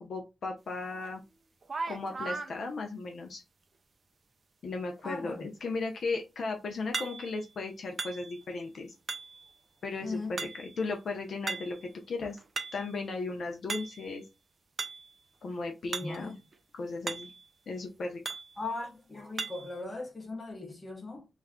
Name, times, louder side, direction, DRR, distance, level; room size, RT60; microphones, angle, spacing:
voice 1, 0.0-1.2 1.8-3.4 4.6-8.9 9.8-12.4 12.7-14.2 15.4-16.4 16.7-17.3 17.7-18.2, left 3 dB, 55° left, 0.4 m, -36 dB
sound 1, 1.1-1.2 1.6-2.5 6.9-7.5 8.0-8.5 9.1-9.5 10.4-10.8 11.5-11.9 12.3-12.9 13.7-14.1 14.8-15.1 15.9-16.2 16.5-16.6 17.1-17.5 18.3-18.6 19.4-19.7, right 4 dB, 35° right, 0.3 m, -37 dB
voice 2, 5.0-5.5 10.0-10.4 16.0-16.4 18.6-21.3, left 3 dB, 20° left, 0.8 m, -39 dB
2.3 x 2.1 x 3.5 m
wide cardioid pair, 140°, 0 cm